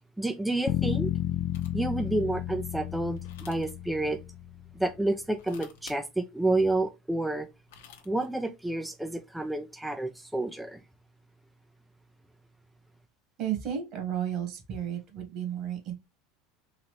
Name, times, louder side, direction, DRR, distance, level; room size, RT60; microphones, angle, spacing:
voice 1, 0.2-1.1 1.7-4.2 4.8-7.5 8.1-10.8, right 2 dB, 5° right, 0.5 m, -29 dB
sound 1, 0.7-4.8, left 11 dB, 60° left, 0.3 m, -32 dB
sound 2, 1.5-1.9 3.2-3.7 5.3-6.0 7.4-8.3, left 7 dB, 80° left, 0.9 m, -51 dB
voice 2, 13.4-15.9, right 9 dB, 55° right, 1.7 m, -33 dB
3.9 x 2.8 x 3.2 m
hypercardioid pair, 95°, 0 cm